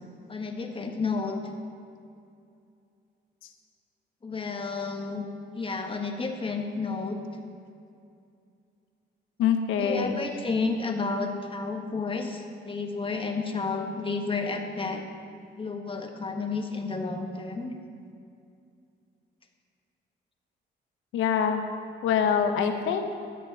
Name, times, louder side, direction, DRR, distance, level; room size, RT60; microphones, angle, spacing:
voice 1, 0.3-1.4 4.2-5.3 5.5-7.2 9.8-15.0 15.6-17.7 22.7-22.8, left 4 dB, 25° left, 3 dB, 1.4 m, -31 dB
voice 2, 9.4-10.2 21.1-21.6 22.0-23.2, left 7 dB, 90° left, 6 dB, 1.0 m, -25 dB
13.0 x 7.7 x 5.6 m, 2.5 s
cardioid pair, 90°, 20 cm